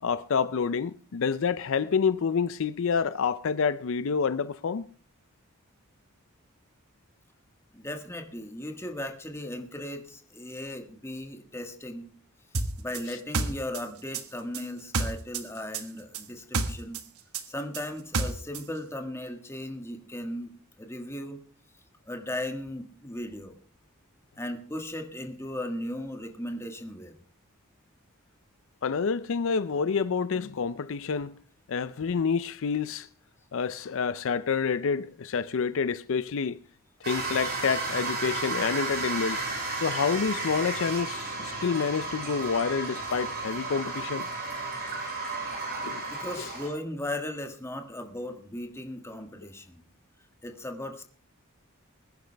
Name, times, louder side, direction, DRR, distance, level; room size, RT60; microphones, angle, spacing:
voice 1, 0.0-4.9 13.1-13.2 28.8-31.4 31.7-33.1 33.5-36.6 37.1-39.4 39.8-44.3 45.8-46.0 46.4-46.5, left 5 dB, 65° left, 0.5 m, -28 dB
voice 2, 7.7-12.1 12.8-17.0 17.5-20.5 20.8-21.4 22.1-23.6 24.4-27.1 46.1-49.8 50.4-51.0, left 1 dB, 10° left, 1.6 m, -37 dB
sound 1, 12.5-15.5 15.7-18.7, right 3 dB, 90° right, 1.5 m, -30 dB
sound 2, 37.0-46.7, right 3 dB, 50° right, 6.6 m, -33 dB
21.0 x 10.5 x 3.4 m
head